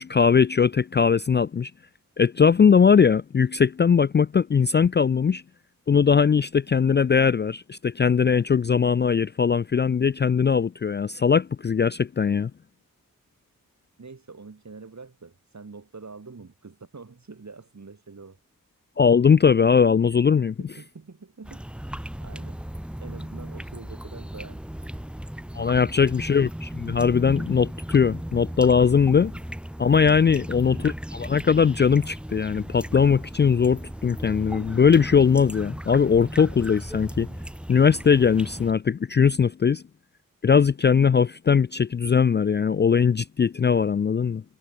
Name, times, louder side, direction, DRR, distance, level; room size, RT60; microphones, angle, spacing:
voice 1, 0.0-1.7 2.2-5.4 5.9-12.5 19.0-20.5 25.6-29.3 29.8-37.3 37.7-39.8 40.4-44.4, left 6 dB, 35° left, 0.4 m, -20 dB
voice 2, 14.0-18.4 20.6-21.6 22.2-22.6 23.0-24.6 25.6-25.9 29.1-29.4, right 4 dB, 55° right, 7.1 m, -45 dB
sound 1, 21.4-38.7, equal, 5° right, 0.7 m, -36 dB
cardioid pair, 65°, 34 cm